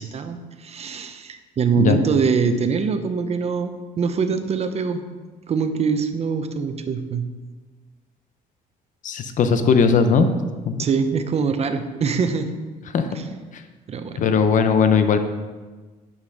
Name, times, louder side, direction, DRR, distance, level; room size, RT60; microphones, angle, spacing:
voice 1, 0.0-5.0 5.5-7.3 10.8-12.5 13.9-14.3, right 5 dB, 40° right, 8 dB, 0.8 m, -23 dB
voice 2, 9.0-10.3 10.6-10.9 12.9-13.1 13.5-13.6 14.2-15.2, left 5 dB, 50° left, 8 dB, 0.8 m, -18 dB
9.0 x 5.7 x 4.9 m, 1.3 s
cardioid pair, 110°, 17 cm